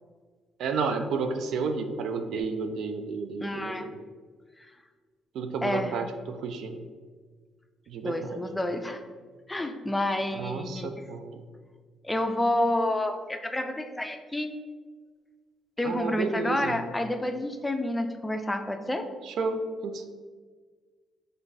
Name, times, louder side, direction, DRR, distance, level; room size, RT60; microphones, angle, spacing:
voice 1, 0.6-3.9 5.3-6.8 7.9-8.4 10.3-11.4 15.8-16.8 19.2-20.1, right 4 dB, 75° right, 7 dB, 0.3 m, -31 dB
voice 2, 3.4-3.9 5.6-6.0 8.0-9.0 9.5-11.0 12.0-14.5 15.8-19.1, left 1 dB, 10° left, 6 dB, 0.4 m, -29 dB
3.8 x 2.5 x 3.8 m, 1.5 s
cardioid pair, 90°, 0 cm